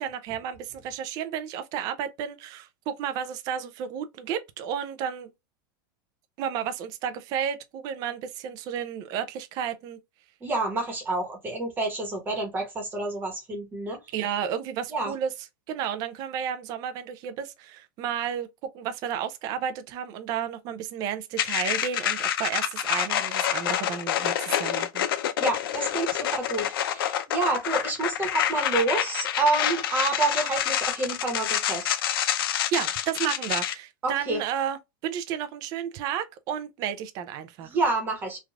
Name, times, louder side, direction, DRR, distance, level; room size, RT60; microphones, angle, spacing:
voice 1, 0.0-5.3 6.4-10.0 14.1-15.3 15.7-25.1 32.7-37.7, right 8 dB, 30° right, 0.4 m, -32 dB
voice 2, 10.4-14.0 14.9-15.1 25.4-31.9 34.0-34.4 37.7-38.4, right 3 dB, 15° right, 1.0 m, -28 dB
sound 1, 21.4-33.7, left 10 dB, 80° left, 0.6 m, -27 dB
3.2 x 2.3 x 2.3 m
supercardioid pair, 155°, 12 cm